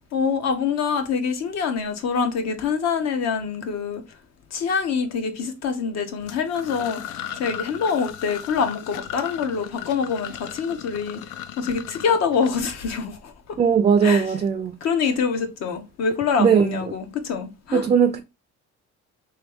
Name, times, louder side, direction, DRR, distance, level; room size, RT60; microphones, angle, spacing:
voice 1, 0.1-4.0 4.5-13.3 14.0-14.3 14.8-17.9, left 6 dB, 60° left, 0.9 m, -25 dB
sound 1, 6.2-13.1, left 10 dB, 85° left, 0.5 m, -37 dB
voice 2, 13.6-14.8 16.4-16.7 17.7-18.2, right 7 dB, 25° right, 0.4 m, -18 dB
3.4 x 3.0 x 3.5 m
cardioid pair, 120°, 30 cm